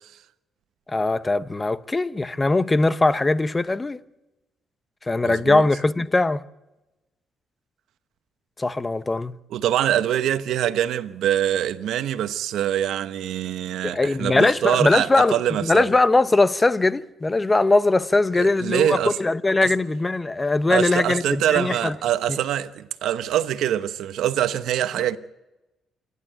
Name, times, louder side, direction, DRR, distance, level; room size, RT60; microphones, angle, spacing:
voice 1, 0.9-4.0 5.0-6.4 8.6-9.3 13.8-15.4 15.6-22.0 22.3-22.4, left 2 dB, 20° left, 0.8 m, -21 dB
voice 2, 5.2-5.6 9.5-15.8 18.4-19.2 19.6-19.7 20.7-25.2, right 11 dB, 80° right, 1.0 m, -24 dB
27.5 x 11.0 x 9.0 m
cardioid pair, 90°, 0 cm